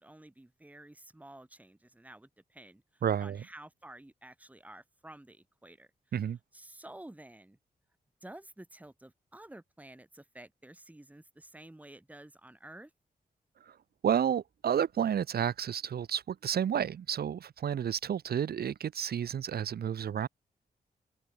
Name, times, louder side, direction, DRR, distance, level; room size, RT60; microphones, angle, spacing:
voice 1, 0.0-5.9 6.5-7.6 8.2-12.9, right 1 dB, 10° right, 5.1 m, -51 dB
voice 2, 3.0-3.4 6.1-6.4 13.7-13.8 14.0-20.3, right 8 dB, 75° right, 1.0 m, -31 dB
open air
wide cardioid pair, 150°, 16 cm